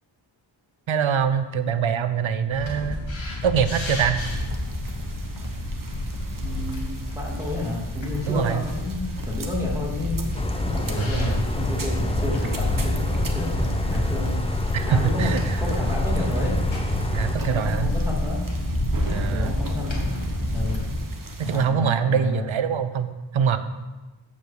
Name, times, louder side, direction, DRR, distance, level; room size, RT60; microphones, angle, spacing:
voice 1, 0.9-3.0 3.4-4.2 8.3-8.6 11.0-11.4 14.7-15.6 17.1-17.9 19.1-19.5 21.4-23.6, right 7 dB, 75° right, 11 dB, 0.7 m, -24 dB
Hinaus in die Felder, 2.5-21.0, left 1 dB, 70° left, 2.0 m, -28 dB
sound 1, 4.2-21.7, right 2 dB, 45° right, 1.1 m, -39 dB
voice 2, 6.4-10.2 10.6-14.6 14.9-15.3 15.6-16.6 17.4-18.4 19.3-20.1 20.5-20.8 21.4-22.4, left 2 dB, 5° right, -4 dB, 2.7 m, -31 dB
sound 2, 10.3-17.4, left 1 dB, 15° left, 0.6 m, -31 dB
7.7 x 5.4 x 6.7 m, 1.2 s
wide cardioid pair, 70°, 47 cm